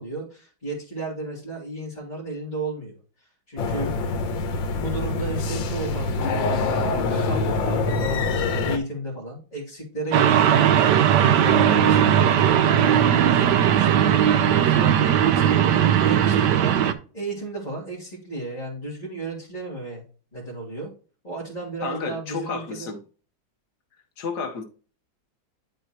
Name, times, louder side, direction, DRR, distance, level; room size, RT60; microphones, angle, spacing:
voice 1, 0.0-3.9 4.8-6.5 7.1-16.8 17.1-20.0 20.3-20.9 21.2-22.9, right 2 dB, 20° left, 3.0 m, -34 dB
sound 1, 3.6-8.8, left 3 dB, 90° left, 1.7 m, -25 dB
sound 2, 10.1-16.9, right 9 dB, 70° right, 1.2 m, -18 dB
voice 2, 21.8-23.0 24.2-24.6, left 4 dB, 60° left, 1.6 m, -31 dB
11.5 x 4.4 x 2.9 m
omnidirectional pair, 2.0 m